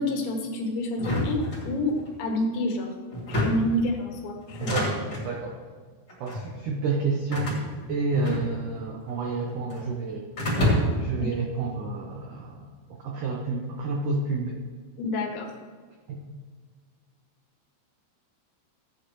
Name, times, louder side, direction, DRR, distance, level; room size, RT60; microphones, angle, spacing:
voice 1, 0.0-3.0 3.3-4.7 11.2-11.3 15.0-15.5, left 1 dB, 85° left, 1 dB, 3.7 m, -28 dB
sound 1, 1.0-2.1 3.1-3.8 4.5-5.3 6.1-6.5 7.3-8.8 9.1-9.9 10.4-11.1, equal, 30° left, 2.8 m, -28 dB
voice 2, 4.6-5.6 6.2-7.5 7.9-10.3 11.0-12.7 13.0-14.6 16.1-16.2, right 3 dB, 80° right, -1 dB, 1.8 m, -29 dB
15.5 x 8.8 x 3.2 m, 1.5 s
omnidirectional pair, 5.1 m